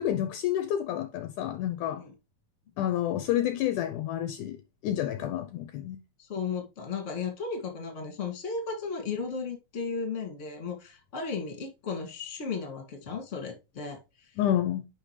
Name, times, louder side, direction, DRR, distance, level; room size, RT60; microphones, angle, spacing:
voice 1, 0.0-2.0 2.8-4.6 4.8-6.0 14.4-14.9, left 11 dB, 80° left, 1.9 m, -29 dB
voice 2, 6.2-14.3, left 5 dB, 25° left, 1.8 m, -35 dB
10.0 x 5.2 x 3.2 m
omnidirectional pair, 4.0 m